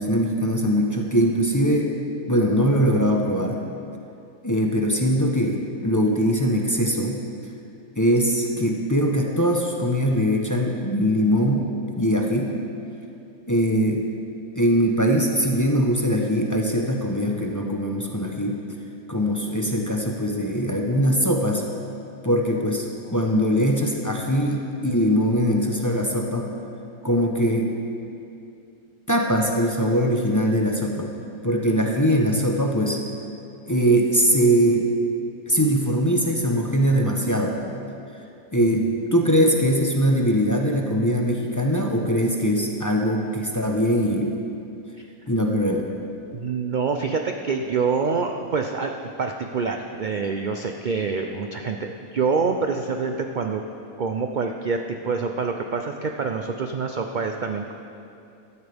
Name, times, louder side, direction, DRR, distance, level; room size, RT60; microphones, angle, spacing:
voice 1, 0.0-1.9 2.3-3.6 4.4-7.2 8.0-11.7 12.0-12.6 13.5-14.0 14.5-18.6 19.1-21.6 22.2-26.5 27.0-27.7 29.1-31.1 31.4-33.0 33.7-34.9 35.5-37.6 38.5-44.3 45.3-45.8, equal, 15° left, 0 dB, 0.8 m, -21 dB
voice 2, 46.3-53.6 54.0-57.7, right 5 dB, 55° right, 4 dB, 0.5 m, -26 dB
16.5 x 12.5 x 3.5 m, 2.6 s
omnidirectional pair, 1.5 m